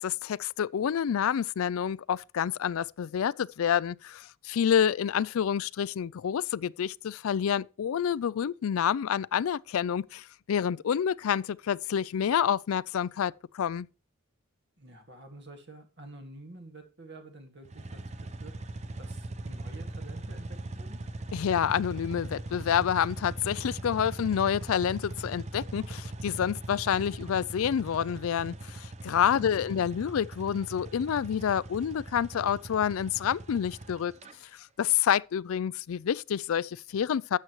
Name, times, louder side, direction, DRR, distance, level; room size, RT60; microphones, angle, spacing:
voice 1, 0.0-13.9 21.3-34.1 34.5-37.4, left 8 dB, 75° left, 0.4 m, -28 dB
voice 2, 14.8-18.5 19.0-21.0 29.4-29.9, right 2 dB, 55° right, 2.0 m, -49 dB
sound 1, 17.6-34.3, right 2 dB, 30° right, 0.7 m, -40 dB
12.0 x 7.6 x 3.1 m
head